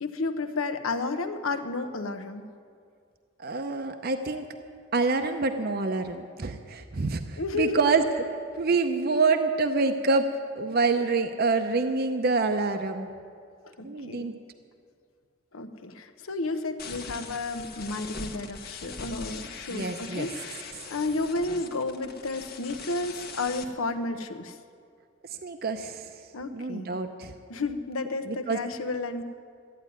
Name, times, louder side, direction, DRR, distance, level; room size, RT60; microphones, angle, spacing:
voice 1, 0.0-2.5 7.4-7.9 13.6-14.3 15.5-24.6 26.3-26.9 27.5-29.2, left 3 dB, 80° left, 9 dB, 0.9 m, -32 dB
voice 2, 3.4-4.5 4.9-8.0 8.6-10.2 10.6-13.1 13.8-14.3 19.7-20.3 25.4-26.1 26.5-27.3 28.3-28.6, right 4 dB, 45° right, 7 dB, 0.7 m, -26 dB
sound 1, 16.8-23.6, left 4 dB, 45° left, 1.1 m, -41 dB
14.0 x 9.4 x 9.4 m, 2.3 s
head